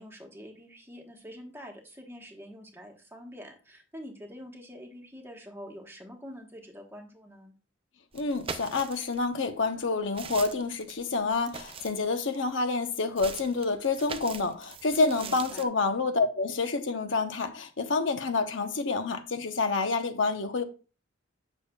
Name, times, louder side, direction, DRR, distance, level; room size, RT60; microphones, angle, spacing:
voice 1, 0.0-7.6 14.9-15.7, equal, 10° right, 1.2 m, -46 dB
voice 2, 8.1-20.6, left 3 dB, 70° left, 0.9 m, -28 dB
sound 1, 8.1-9.3 9.8-12.5 13.2-15.7, right 6 dB, 30° right, 0.5 m, -42 dB
8.3 x 6.2 x 2.3 m
head